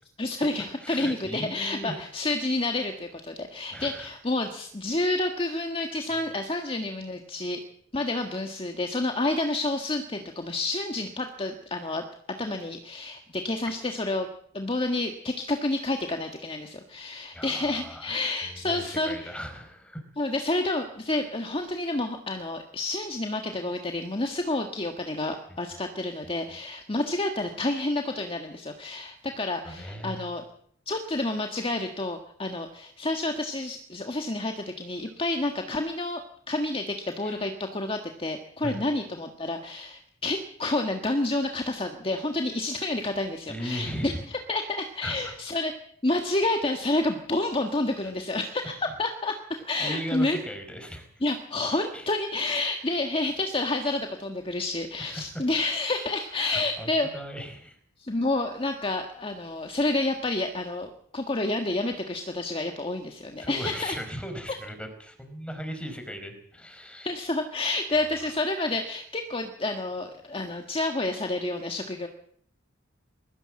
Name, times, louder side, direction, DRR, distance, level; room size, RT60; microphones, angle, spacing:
voice 1, 0.2-7.6 7.9-12.0 12.4-14.3 14.5-19.3 20.2-30.4 30.8-36.2 36.5-45.7 46.0-50.4 51.2-57.1 58.0-64.0 67.0-72.1, left 2 dB, 30° left, 4 dB, 1.6 m, -29 dB
voice 2, 0.8-2.0 3.7-4.1 17.3-20.0 29.6-30.3 37.2-37.4 38.6-38.8 43.5-44.2 45.0-45.3 49.8-51.1 51.9-52.1 55.0-55.3 56.4-57.8 63.4-67.1, equal, 5° left, 6 dB, 4.8 m, -37 dB
22.0 x 15.5 x 7.7 m, 0.64 s
head